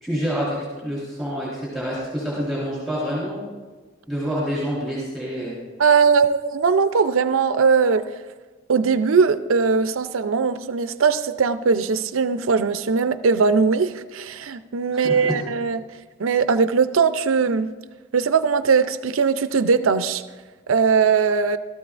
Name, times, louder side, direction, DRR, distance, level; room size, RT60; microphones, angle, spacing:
voice 1, 0.0-3.4 4.1-5.5 14.9-15.4, equal, ahead, -7 dB, 3.7 m, -27 dB
voice 2, 5.8-8.0 8.7-15.8 16.2-17.7 18.1-20.2 20.7-21.6, right 5 dB, 90° right, 11 dB, 0.5 m, -20 dB
15.5 x 13.5 x 2.5 m, 1.3 s
head